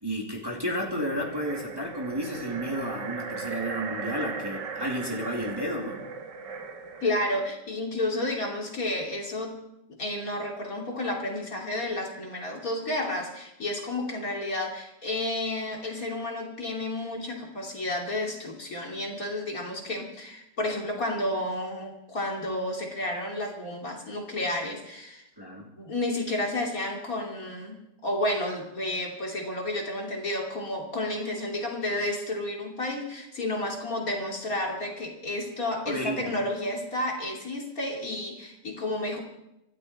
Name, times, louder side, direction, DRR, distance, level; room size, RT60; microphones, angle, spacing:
voice 1, 0.0-6.0 25.4-25.7 35.9-36.3, equal, 10° right, -1 dB, 2.5 m, -32 dB
sound 1, 0.8-7.3, right 5 dB, 70° right, 2.2 m, -38 dB
voice 2, 7.0-9.6 10.0-25.3 25.8-39.2, left 1 dB, 50° left, 0 dB, 3.3 m, -31 dB
26.5 x 12.5 x 4.3 m, 0.90 s
omnidirectional pair, 2.0 m